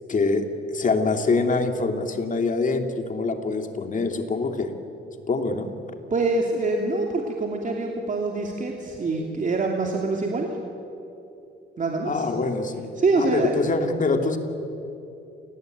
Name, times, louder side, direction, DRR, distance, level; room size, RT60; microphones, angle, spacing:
voice 1, 0.1-4.7 5.3-5.7 12.0-12.9 13.2-14.4, left 3 dB, 40° left, 6 dB, 2.7 m, -24 dB
voice 2, 6.1-10.5 11.8-12.3 13.0-13.5, right 3 dB, 40° right, 1 dB, 2.9 m, -25 dB
28.0 x 19.0 x 9.3 m, 2.9 s
cardioid pair, 90°, 20 cm